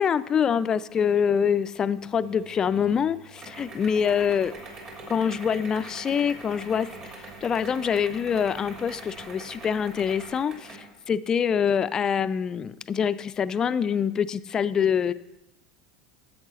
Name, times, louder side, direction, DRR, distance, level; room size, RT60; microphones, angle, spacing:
voice 1, 0.0-4.5 5.1-15.1, left 7 dB, 30° left, 15 dB, 0.4 m, -25 dB
sound 1, 2.1-10.9, right 2 dB, 40° right, 2.6 m, -43 dB
10.5 x 7.9 x 4.3 m, 0.98 s
figure-of-eight pair, 75°, 2 cm